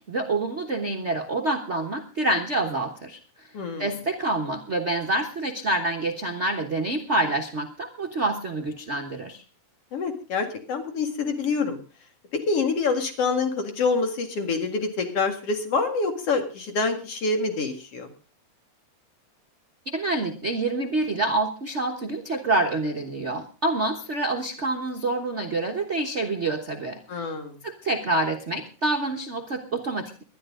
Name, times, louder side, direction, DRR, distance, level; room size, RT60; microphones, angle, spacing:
voice 1, 0.0-3.5 3.8-9.4 19.9-27.3 27.6-30.2, right 2 dB, 90° right, 3 dB, 0.6 m, -27 dB
voice 2, 3.5-3.9 9.9-11.8 12.5-18.1 27.1-27.6, left 4 dB, 55° left, 6 dB, 2.9 m, -26 dB
20.5 x 11.5 x 3.8 m, 0.35 s
omnidirectional pair, 3.4 m